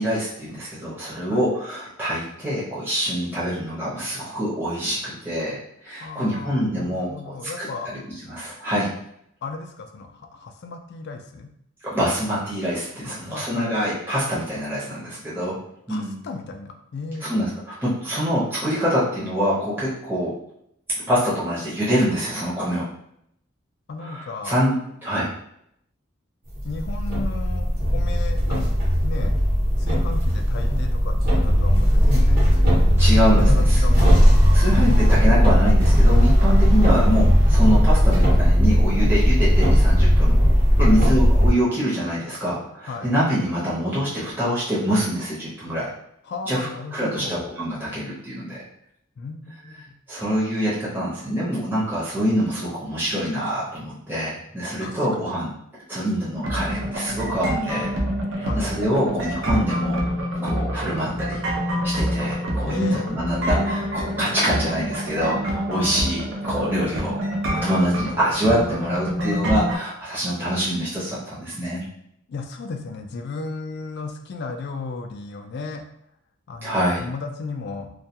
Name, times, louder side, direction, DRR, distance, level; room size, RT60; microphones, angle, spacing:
voice 1, 0.0-5.6 5.8-7.7 8.3-8.9 11.8-15.6 15.9-16.2 17.2-17.5 17.8-20.3 21.1-22.8 24.0-24.8 25.0-25.3 33.0-33.8 34.5-40.4 40.8-45.9 46.5-48.6 50.1-55.5 55.9-57.9 58.4-60.0 60.4-61.4 61.8-67.2 67.5-71.8 76.6-77.1, equal, 10° right, -10 dB, 0.7 m, -25 dB
voice 2, 6.0-8.0 9.4-11.5 13.0-13.8 15.9-17.3 23.9-24.5 26.6-29.4 29.8-32.5 33.1-34.3 40.8-41.0 42.9-43.1 46.2-47.4 49.2-50.0 54.8-55.4 58.4-58.7 62.6-63.0 72.3-75.8 76.5-78.0, left 4 dB, 55° left, 6 dB, 0.3 m, -34 dB
sound 1, 26.5-41.5, equal, 45° right, 0.9 m, -17 dB
sound 2, 56.4-69.8, equal, 60° right, 0.5 m, -27 dB
2.2 x 2.2 x 2.8 m, 0.74 s
head